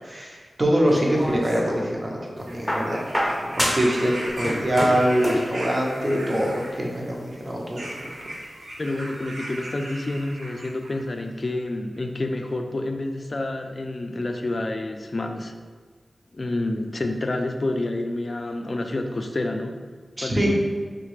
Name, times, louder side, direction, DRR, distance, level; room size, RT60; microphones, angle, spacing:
voice 1, 0.0-3.0 3.5-8.1 20.2-20.5, equal, 35° right, -2 dB, 0.7 m, -24 dB
sound 1, 0.9-1.9 2.7-4.0 4.3-5.5 6.6-6.7, equal, 5° right, 0.7 m, -27 dB
sound 2, 2.4-11.0 11.9-12.0, right 1 dB, 80° right, 0.5 m, -37 dB
voice 2, 8.8-15.5 16.3-19.7 20.2-20.5, left 2 dB, 50° left, 5 dB, 0.3 m, -28 dB
3.6 x 2.4 x 3.2 m, 1.5 s
cardioid pair, 50°, 0 cm